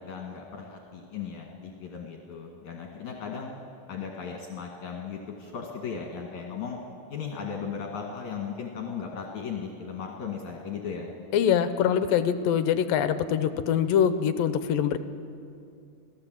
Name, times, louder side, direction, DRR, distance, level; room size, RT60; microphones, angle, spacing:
voice 1, 0.0-3.6 3.9-6.8 7.1-11.1, left 6 dB, 60° left, 0 dB, 3.0 m, -36 dB
voice 2, 11.3-15.0, left 8 dB, 80° left, 11 dB, 2.5 m, -24 dB
27.0 x 17.0 x 7.7 m, 2.5 s
omnidirectional pair, 4.1 m